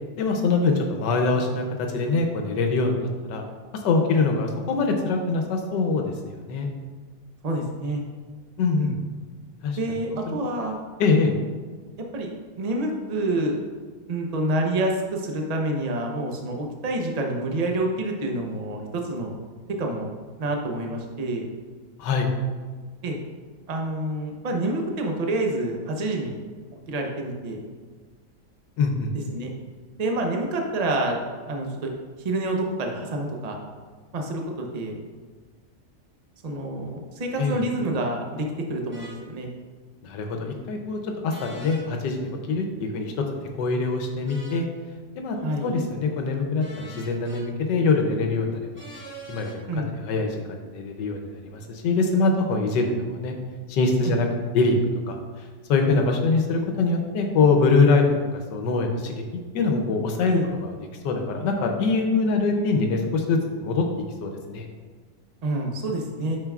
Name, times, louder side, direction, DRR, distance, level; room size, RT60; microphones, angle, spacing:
voice 1, 0.2-3.4 3.7-6.7 8.6-8.9 9.6-9.8 10.3-10.4 11.0-11.3 22.0-22.3 28.8-29.1 37.4-37.6 40.0-43.1 43.6-44.7 45.2-45.4 45.6-48.9 49.3-49.7 49.9-53.3 53.7-54.3 54.5-55.2 55.7-58.0 58.3-59.1 59.5-60.8 61.0-63.8 64.2-64.7, left 3 dB, 90° left, 3 dB, 1.4 m, -23 dB
voice 2, 7.4-8.0 8.8-8.9 9.8-10.8 12.1-12.3 12.6-13.6 14.1-19.4 19.8-20.1 20.4-21.5 23.0-23.2 23.7-26.4 26.9-27.6 29.1-29.5 30.0-31.2 31.5-31.9 32.2-33.6 34.1-35.0 36.4-39.5 45.4-45.7 49.7-49.9 54.0-54.1 55.9-56.0 60.3-60.5 65.4-66.4, right 1 dB, 45° right, 1 dB, 0.5 m, -28 dB
sound 1, 38.9-39.2 41.3-41.8 44.3-44.7 46.6-47.4 48.7-49.6, right 1 dB, 10° right, 0.9 m, -42 dB
9.0 x 5.7 x 2.4 m, 1.5 s
omnidirectional pair, 1.8 m